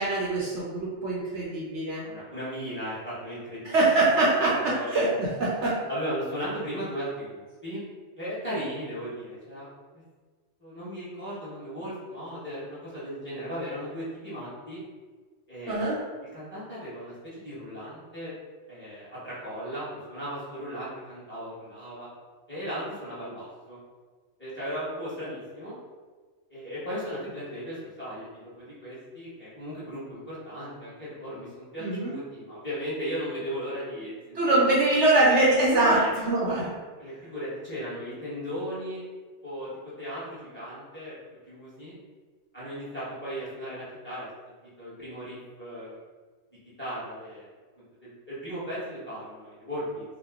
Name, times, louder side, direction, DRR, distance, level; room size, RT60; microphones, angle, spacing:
voice 1, 0.0-2.0 3.6-5.8 15.7-16.0 31.8-32.1 34.4-36.7, right 2 dB, 65° right, -5 dB, 0.9 m, -23 dB
voice 2, 1.9-3.7 4.5-5.0 5.9-7.8 8.2-9.7 9.9-10.0 10.6-14.8 15.5-15.8 16.2-18.3 18.7-22.1 22.5-23.8 24.4-25.7 26.5-34.6 35.9-36.1 37.0-39.1 39.4-39.7 40.0-41.1 41.5-42.0 42.5-45.9 46.8-47.5 48.0-50.0, equal, 10° left, -10 dB, 1.1 m, -36 dB
2.9 x 2.2 x 3.5 m, 1.4 s
omnidirectional pair, 1.4 m